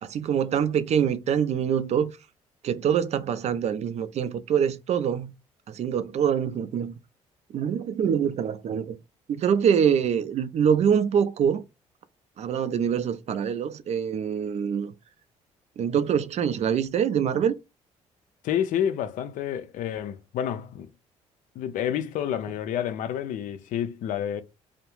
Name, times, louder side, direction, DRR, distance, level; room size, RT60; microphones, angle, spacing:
voice 1, 0.0-2.1 2.6-5.3 5.7-6.9 7.5-9.0 9.3-11.6 12.4-14.9 15.8-17.5, right 8 dB, 50° right, 0.4 m, -24 dB
voice 2, 18.4-20.9 21.6-24.4, left 9 dB, 70° left, 0.4 m, -29 dB
2.3 x 2.0 x 3.0 m
supercardioid pair, 70°, 14 cm